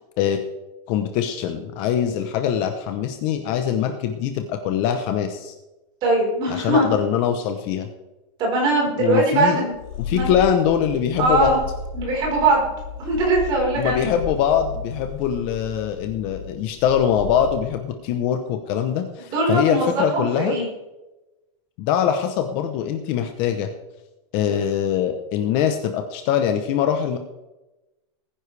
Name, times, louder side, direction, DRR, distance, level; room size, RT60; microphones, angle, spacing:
voice 1, 0.9-5.5 6.5-7.9 9.0-9.7 10.0-11.5 13.7-20.6 21.8-23.7 24.3-27.2, left 9 dB, 30° left, 6 dB, 0.8 m, -23 dB
voice 2, 6.0-6.9 8.4-9.7 10.1-10.3 11.2-11.6 11.9-12.7 13.0-14.1 19.3-20.7, right 2 dB, 25° right, -2 dB, 4.4 m, -21 dB
Purr, 9.7-17.8, left 4 dB, 75° left, 2.3 m, -34 dB
20.0 x 10.0 x 3.3 m, 1.0 s
supercardioid pair, 175°, 17 cm